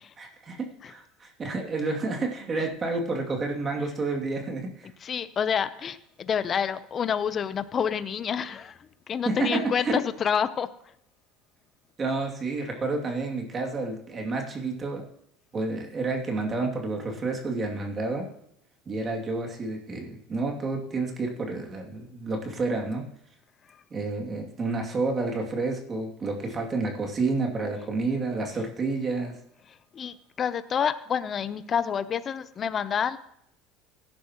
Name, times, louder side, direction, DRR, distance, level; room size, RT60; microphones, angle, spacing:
voice 1, 0.2-4.9 9.2-10.0 12.0-15.0 15.5-18.3 18.9-23.0 23.9-29.3, right 3 dB, 30° right, 1 dB, 2.6 m, -30 dB
voice 2, 5.0-8.8 9.1-10.7 29.9-33.2, left 7 dB, 35° left, 14 dB, 0.7 m, -28 dB
17.0 x 10.5 x 3.0 m, 0.72 s
supercardioid pair, 105°, 0 cm